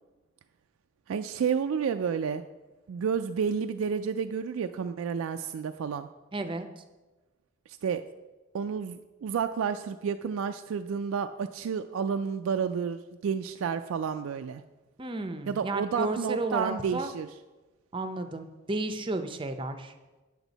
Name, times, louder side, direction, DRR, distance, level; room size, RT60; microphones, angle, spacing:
voice 1, 1.1-2.4 2.9-6.1 7.7-8.0 8.5-14.6 15.5-17.3, right 6 dB, 80° right, 8 dB, 0.3 m, -30 dB
voice 2, 6.3-6.8 15.0-17.1 17.9-19.9, right 2 dB, 25° right, 8 dB, 0.5 m, -33 dB
9.0 x 8.0 x 4.0 m, 1.2 s
head